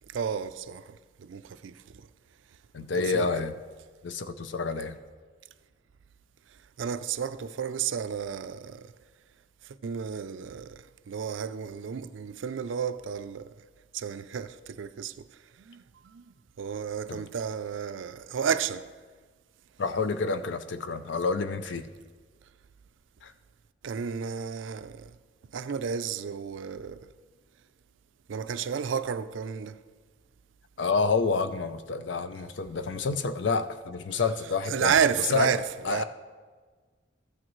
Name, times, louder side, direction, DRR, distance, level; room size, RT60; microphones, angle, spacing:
voice 1, 0.1-2.1 3.1-3.3 6.8-8.9 9.6-13.6 13.9-15.3 15.6-18.9 23.8-25.2 25.5-27.1 28.3-29.8 34.1-34.2 34.7-36.0, right 7 dB, 80° right, 0.4 m, -32 dB
voice 2, 2.7-3.6 4.0-5.0 17.1-17.2 19.8-21.9 23.2-23.3 30.8-35.0 35.3-35.5 35.8-36.0, left 4 dB, 70° left, 0.5 m, -28 dB
13.5 x 8.8 x 3.1 m
head